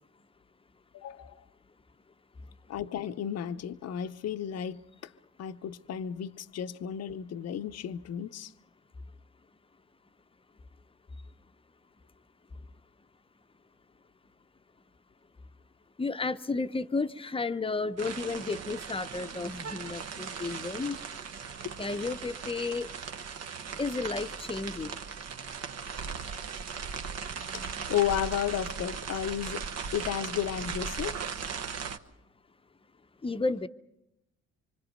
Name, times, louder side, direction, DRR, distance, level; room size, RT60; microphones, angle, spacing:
voice 1, 0.9-1.4 2.7-5.1 5.4-8.5 26.0-26.2 27.5-29.7 29.9-31.2, left 10 dB, 55° left, 0.7 m, -33 dB
voice 2, 16.0-21.0 21.8-22.9 23.8-24.9 33.2-33.7, left 3 dB, 20° left, 0.7 m, -32 dB
sound 1, 18.0-32.0, right 6 dB, 55° right, 1.2 m, -38 dB
25.0 x 25.0 x 5.3 m
cardioid pair, 90°, 30 cm